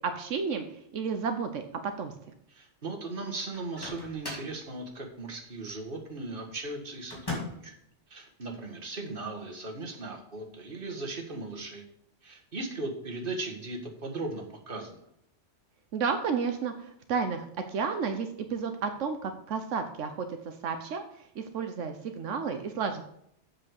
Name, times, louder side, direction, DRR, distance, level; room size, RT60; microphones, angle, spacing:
voice 1, 0.0-0.6 0.9-2.1 15.9-21.0 21.4-23.0, right 5 dB, 85° right, 6 dB, 1.2 m, -32 dB
voice 2, 2.5-7.7 8.1-11.8 12.2-15.0, right 2 dB, 45° right, 1 dB, 1.9 m, -38 dB
Microwave oven, 3.5-4.6 7.1-7.7, left 2 dB, 20° left, 2.6 m, -38 dB
7.7 x 6.2 x 6.5 m, 0.72 s
omnidirectional pair, 1.2 m